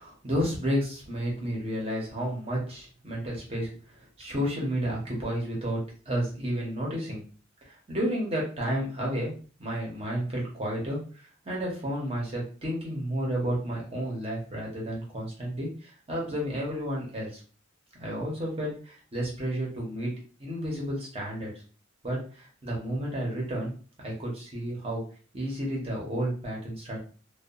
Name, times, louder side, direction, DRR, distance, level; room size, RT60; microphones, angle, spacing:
voice 1, 0.0-3.8 4.2-7.2 7.6-9.3 9.6-17.4 18.0-20.1 20.4-21.5 22.0-23.7 24.0-25.0 25.3-27.0, equal, 30° right, -3 dB, 0.9 m, -31 dB
2.6 x 2.4 x 2.4 m, 0.40 s
head